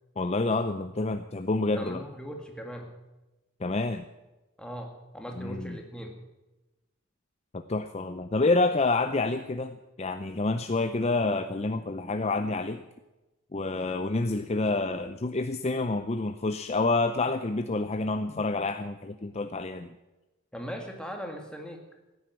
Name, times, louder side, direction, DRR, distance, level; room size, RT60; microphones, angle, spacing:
voice 1, 0.2-2.0 3.6-4.1 5.4-5.8 7.5-12.8 13.5-20.0, left 3 dB, 30° left, 9 dB, 0.5 m, -28 dB
voice 2, 1.8-2.9 4.6-6.2 18.3-18.4 20.5-21.8, equal, 5° left, 2 dB, 1.9 m, -39 dB
15.5 x 9.7 x 9.2 m, 1.1 s
head